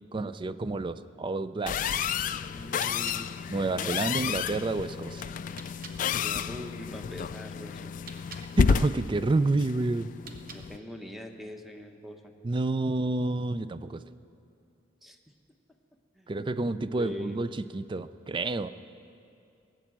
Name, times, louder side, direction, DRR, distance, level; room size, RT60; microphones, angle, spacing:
voice 1, 0.1-2.1 3.5-5.3 8.6-10.1 12.4-14.0 16.3-17.5 17.7-18.7, right 2 dB, 25° right, 13 dB, 0.4 m, -29 dB
sound 1, 1.7-10.8, left 6 dB, 45° left, 0.3 m, -31 dB
voice 2, 2.5-3.3 6.2-8.0 10.5-12.3 15.0-15.2 16.2-16.4 17.0-17.5, left 1 dB, ahead, 4 dB, 0.9 m, -42 dB
sound 2, 2.6-6.0 7.8-8.5 10.1-10.9, right 4 dB, 50° right, 1.0 m, -49 dB
18.5 x 7.9 x 7.3 m, 2.5 s
head